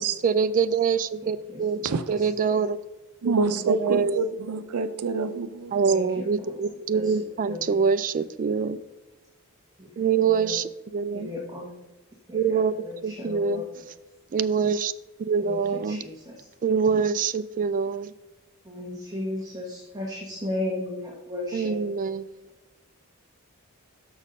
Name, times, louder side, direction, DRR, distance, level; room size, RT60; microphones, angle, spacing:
voice 1, 0.2-2.8 3.2-3.3 3.7-4.2 5.7-8.8 10.0-11.3 12.3-13.6 14.3-14.9 15.2-16.0 16.6-18.1 21.5-22.3, right 6 dB, 40° right, 0.3 m, -25 dB
voice 2, 1.8-2.2 3.2-5.8, right 3 dB, 85° right, 0.6 m, -27 dB
voice 3, 5.9-6.6 6.9-7.1 7.4-7.8 11.1-11.7 12.3-12.6 12.9-13.8 15.4-15.6 15.9-16.4 18.7-21.8, left 1 dB, 15° right, 1.0 m, -34 dB
6.3 x 6.3 x 5.3 m
head